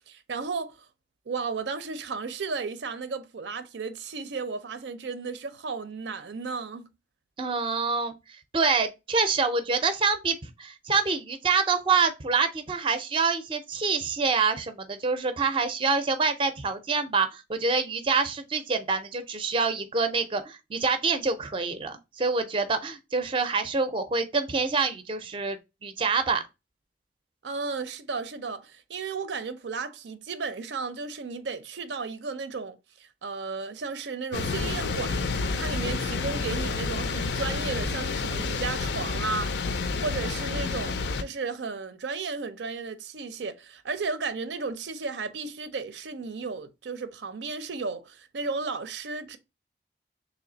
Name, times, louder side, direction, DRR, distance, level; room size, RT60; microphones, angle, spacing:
voice 1, 0.1-0.8 1.3-6.9 27.4-49.4, right 4 dB, 80° right, 0.5 m, -34 dB
voice 2, 7.4-8.2 8.5-26.4, right 4 dB, 30° right, 0.5 m, -26 dB
sound 1, 34.3-41.2, left 4 dB, 70° left, 0.4 m, -29 dB
3.2 x 3.0 x 3.8 m
head